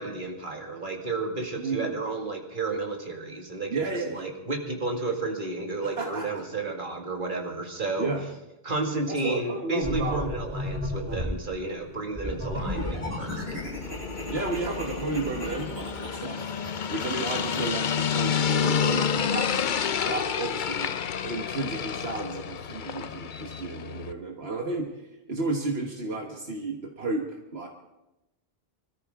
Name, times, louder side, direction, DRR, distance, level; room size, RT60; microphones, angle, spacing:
voice 1, 0.0-8.1 8.6-13.6, right 3 dB, 50° right, 1 dB, 2.3 m, -32 dB
voice 2, 1.6-2.0 3.7-4.3 5.8-6.3 8.0-8.2 9.2-10.2 12.2-12.4 14.3-16.5 16.9-19.5 20.0-24.9 25.3-27.7, right 3 dB, 75° right, 0 dB, 1.7 m, -32 dB
sound 1, 9.8-11.4 12.1-17.7, left 1 dB, 15° right, 7.6 m, -34 dB
sound 2, 12.5-24.1, left 7 dB, 55° left, 0.8 m, -30 dB
25.0 x 14.0 x 3.7 m, 0.96 s
omnidirectional pair, 1.1 m